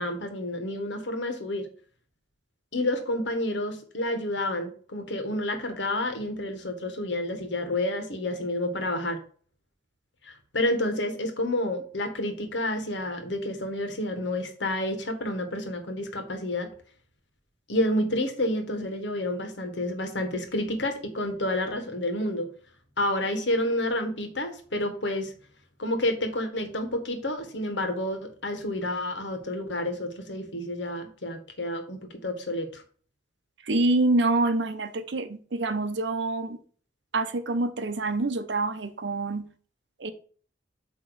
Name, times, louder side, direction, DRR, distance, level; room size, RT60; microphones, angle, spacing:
voice 1, 0.0-1.7 2.7-9.2 10.2-16.7 17.7-22.5 23.0-25.3 25.8-32.8, left 1 dB, 75° left, 1.4 m, -29 dB
voice 2, 33.7-36.6 37.1-39.5 40.0-40.1, right 2 dB, 70° right, 0.7 m, -26 dB
7.9 x 3.0 x 4.7 m
head